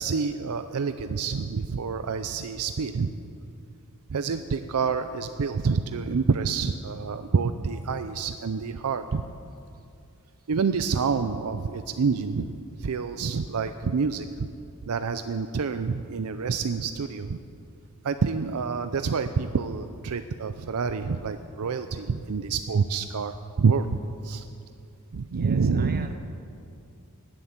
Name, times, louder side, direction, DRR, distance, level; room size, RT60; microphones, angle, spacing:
voice 1, 0.0-3.1 4.1-9.3 10.5-14.5 14.9-17.4 18.0-24.4 25.1-26.1, right 5 dB, 75° right, 9 dB, 0.5 m, -27 dB
voice 2, 25.3-26.1, right 4 dB, 45° right, 6 dB, 1.1 m, -43 dB
19.0 x 7.8 x 7.4 m, 2.6 s
head